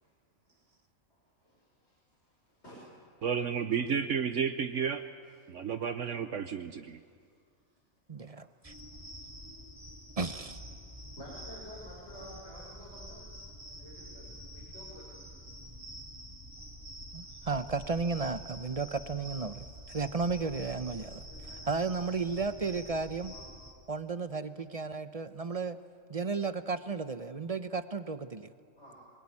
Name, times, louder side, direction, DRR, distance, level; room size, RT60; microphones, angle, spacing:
voice 1, 1.1-2.8 6.9-7.3 7.7-7.8 8.2-8.8 11.2-13.4 13.7-15.3 21.2-21.6 23.3-23.5 28.8-29.0, equal, 50° left, -5 dB, 6.6 m, -52 dB
voice 2, 3.2-5.0 5.5-7.0, right 7 dB, 65° right, 8 dB, 1.2 m, -32 dB
voice 3, 8.1-8.7 10.2-10.6 17.1-21.3 21.7-23.3 23.9-25.8 26.1-28.5, right 4 dB, 35° right, 10 dB, 0.7 m, -34 dB
sound 1, 8.6-23.7, equal, 15° right, 3.4 m, -47 dB
25.5 x 22.0 x 9.8 m, 2.1 s
omnidirectional pair, 1.4 m